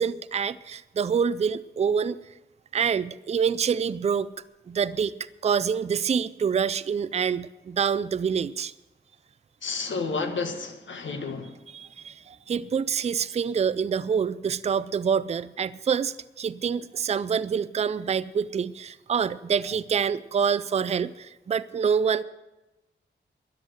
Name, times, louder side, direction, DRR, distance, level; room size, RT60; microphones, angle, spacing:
voice 1, 0.0-2.2 2.7-4.3 4.7-5.1 5.4-8.7 11.7-22.2, right 7 dB, 35° right, 16 dB, 0.3 m, -26 dB
voice 2, 9.6-11.6, left 4 dB, 90° left, 5 dB, 1.6 m, -31 dB
13.0 x 10.5 x 6.5 m, 1.0 s
wide cardioid pair, 165°, 19 cm